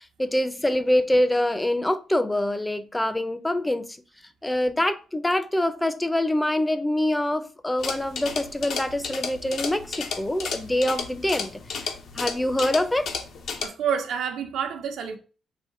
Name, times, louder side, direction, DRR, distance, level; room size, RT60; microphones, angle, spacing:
voice 1, 0.0-4.0 4.4-13.2, left 1 dB, 10° left, 0.5 m, -25 dB
sound 1, 7.8-13.7, left 5 dB, 70° left, 0.8 m, -33 dB
voice 2, 13.6-15.2, right 7 dB, 80° right, 0.8 m, -28 dB
4.2 x 2.7 x 4.6 m
cardioid pair, 100°, 0 cm